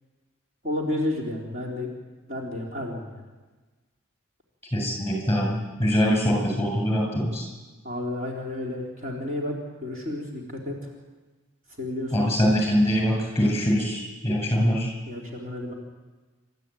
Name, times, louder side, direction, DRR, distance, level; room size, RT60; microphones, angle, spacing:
voice 1, 0.6-1.9 2.3-3.3 7.8-10.9 11.8-12.3 15.1-15.7, left 1 dB, 35° right, -2 dB, 3.9 m, -31 dB
voice 2, 4.7-7.4 12.1-14.9, equal, 15° left, 1 dB, 7.3 m, -23 dB
28.5 x 13.0 x 9.2 m, 1.3 s
head